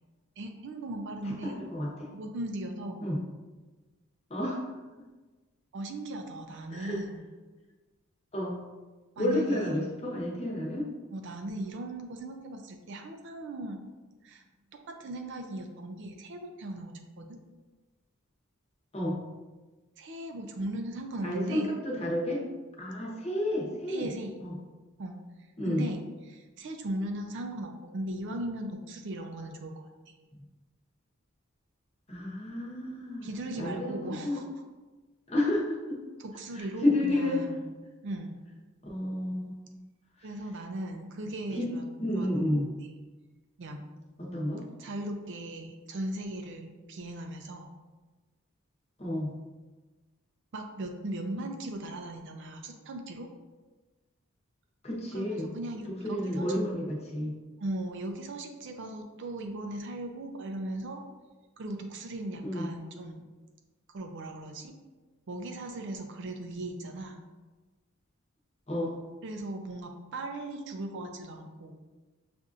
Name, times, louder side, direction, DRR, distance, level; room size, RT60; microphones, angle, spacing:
voice 1, 0.4-1.6 2.1-3.1 5.7-7.2 9.2-9.7 11.1-13.8 14.2-14.4 14.7-17.4 20.0-21.7 23.9-24.3 25.0-25.2 25.6-26.0 26.3-30.1 33.2-34.5 36.2-37.7 38.0-38.4 40.2-41.8 42.1-42.5 42.8-42.9 43.6-43.8 44.8-47.7 50.5-53.3 55.1-56.6 57.1-57.3 57.6-61.0 61.6-63.3 63.9-64.7 65.3-67.2 69.2-71.8, right 1 dB, 55° right, 4 dB, 0.4 m, -38 dB
voice 2, 1.4-2.1 3.0-3.2 4.3-4.7 6.7-7.0 8.3-8.6 9.2-10.8 18.9-19.2 21.2-22.4 22.8-24.1 24.4-24.5 25.6-25.8 32.1-33.3 33.6-34.0 34.2-34.4 35.3-36.0 36.5-37.4 38.8-39.7 41.5-41.7 42.0-42.7 44.2-44.6 49.0-49.3 54.8-55.5 56.0-57.3 62.4-62.7 68.7-69.0, left 1 dB, 30° left, -3 dB, 0.9 m, -30 dB
6.5 x 2.5 x 2.4 m, 1.2 s
head